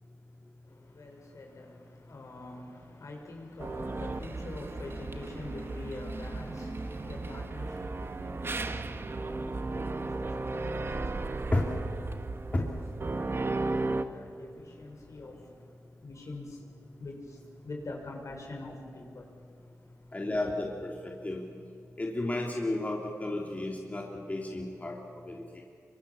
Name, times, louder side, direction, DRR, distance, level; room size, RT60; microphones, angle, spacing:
voice 1, 0.6-11.6 11.8-12.8 13.1-15.7 16.0-16.6 17.0-19.3 19.6-20.2, left 2 dB, 65° left, 1 dB, 6.1 m, -45 dB
sound 1, 3.6-14.0, right 3 dB, 45° right, 1.4 m, -35 dB
voice 2, 20.1-21.4 22.0-25.6, left 2 dB, 25° left, -1 dB, 3.3 m, -32 dB
26.5 x 24.5 x 7.2 m, 2.3 s
wide cardioid pair, 75°, 6 cm